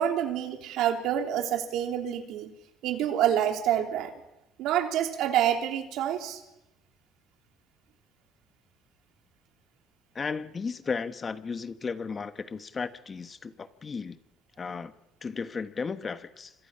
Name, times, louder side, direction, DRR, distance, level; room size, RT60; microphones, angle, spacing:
voice 1, 0.0-2.5 2.8-4.1 4.6-6.4, right 10 dB, 75° right, 4 dB, 3.2 m, -27 dB
voice 2, 10.1-14.2 14.6-14.9 15.2-16.5, left 5 dB, 30° left, 11 dB, 1.1 m, -34 dB
27.5 x 26.0 x 5.6 m, 0.92 s
cardioid pair, 110°, 0 cm